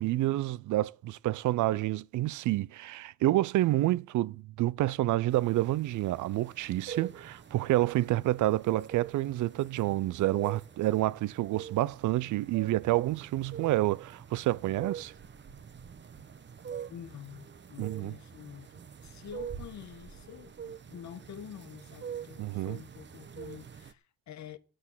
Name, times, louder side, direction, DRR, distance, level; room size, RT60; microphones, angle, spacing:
voice 1, 0.0-15.1 17.8-18.1 22.4-22.8, right 16 dB, 75° right, 0.5 m, -28 dB
sound 1, 5.3-23.9, right 7 dB, 40° right, 1.0 m, -45 dB
voice 2, 16.9-24.6, left 10 dB, 65° left, 1.4 m, -47 dB
14.5 x 6.3 x 7.3 m
cardioid pair, 90°, 30 cm